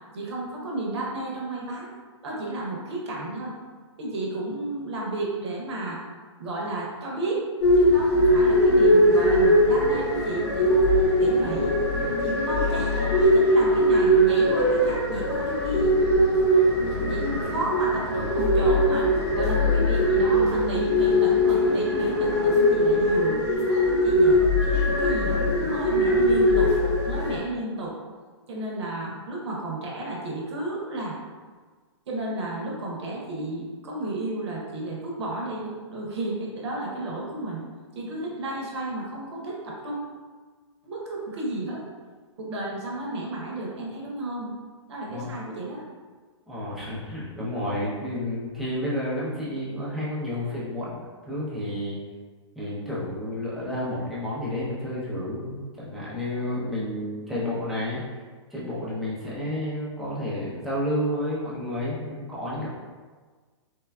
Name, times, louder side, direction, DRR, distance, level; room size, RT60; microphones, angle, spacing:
voice 1, 0.1-1.9 2.2-3.5 4.0-6.0 6.4-7.4 7.8-11.7 12.2-15.9 17.1-23.4 23.9-26.7 27.1-27.9 28.5-31.2 32.1-37.6 37.9-40.0 40.8-41.8 42.4-44.5 44.9-45.8, right 2 dB, 65° right, -3 dB, 0.7 m, -32 dB
sound 1, 7.6-27.4, equal, 60° left, 1.1 m, -21 dB
voice 2, 46.5-52.0 52.6-58.0 58.5-62.7, left 1 dB, ahead, -9 dB, 0.6 m, -30 dB
3.2 x 2.3 x 2.2 m, 1.5 s
hypercardioid pair, 145°, 15 cm